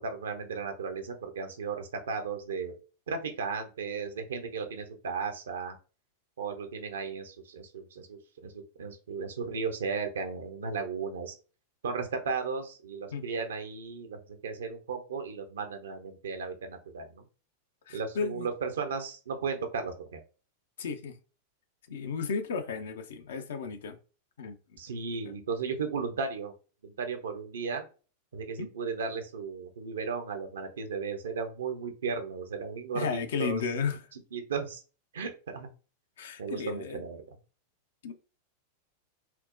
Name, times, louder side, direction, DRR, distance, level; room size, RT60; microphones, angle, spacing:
voice 1, 0.0-2.7 3.1-5.8 6.4-11.4 11.8-17.2 17.9-20.2 24.8-26.5 26.8-27.8 28.3-33.6 34.3-34.8 35.1-35.7 36.4-37.2, right 5 dB, 65° right, 0.6 m, -35 dB
voice 2, 17.9-18.5 20.8-21.2 21.9-24.0 24.4-24.8 25.2-25.3 28.6-28.7 32.9-34.0 36.2-37.0 38.0-38.1, left 5 dB, 60° left, 0.5 m, -34 dB
4.4 x 2.1 x 2.5 m
figure-of-eight pair, 90°, 0 cm